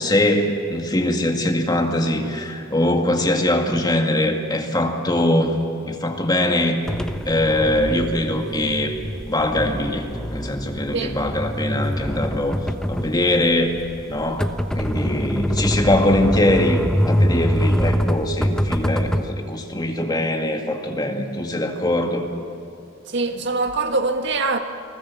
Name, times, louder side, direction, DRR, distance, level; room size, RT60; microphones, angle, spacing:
voice 1, 0.0-5.6 5.9-6.8 7.3-9.0 9.3-12.6 12.9-13.7 14.1-22.3, left 1 dB, 20° left, 2.0 m, -22 dB
sound 1, 6.9-19.3, equal, 5° left, 0.8 m, -24 dB
voice 2, 23.0-24.6, right 3 dB, 65° right, 1.6 m, -23 dB
29.5 x 19.5 x 7.2 m
head